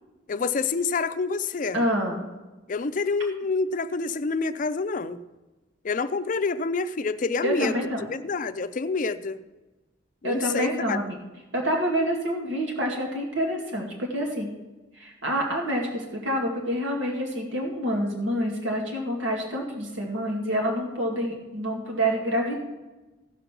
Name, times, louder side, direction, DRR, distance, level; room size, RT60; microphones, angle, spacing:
voice 1, 0.3-1.8 2.7-5.2 5.8-7.8 8.1-9.4 10.2-11.0, left 4 dB, 45° left, 12 dB, 0.5 m, -27 dB
voice 2, 1.7-2.2 7.4-8.1 10.2-11.2 11.5-14.5 14.9-22.6, equal, 85° right, 0 dB, 2.0 m, -27 dB
16.0 x 5.4 x 5.9 m, 1.1 s
head